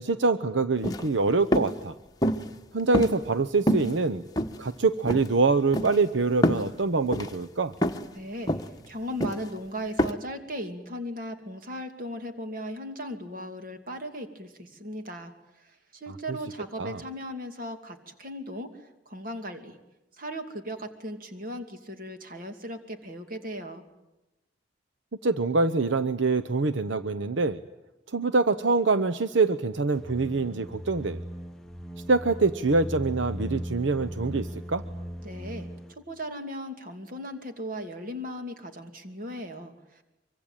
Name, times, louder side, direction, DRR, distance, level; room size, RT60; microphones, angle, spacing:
voice 1, 0.0-1.9 2.7-4.2 4.6-7.7 16.1-16.4 16.8-17.0 25.2-27.6 28.1-31.2 32.1-34.8, right 3 dB, 80° right, 10 dB, 0.9 m, -25 dB
sound 1, 0.8-1.1 1.5-1.7 2.2-2.5 2.9-3.4 3.7-3.9 4.4-4.8 5.1-5.3 5.7-6.0 6.4-6.7 7.1-7.3 7.8-8.1 8.5-8.7 9.2-9.5 10.0-10.1, equal, 20° left, 1.3 m, -26 dB
voice 2, 8.1-8.5 8.9-15.3 15.9-18.8 19.1-19.8 20.2-23.8 35.2-35.7 36.0-40.0, equal, 45° right, 6 dB, 2.6 m, -37 dB
sound 2, 30.0-35.9, equal, ahead, 1.0 m, -38 dB
24.5 x 24.0 x 9.1 m, 0.98 s
head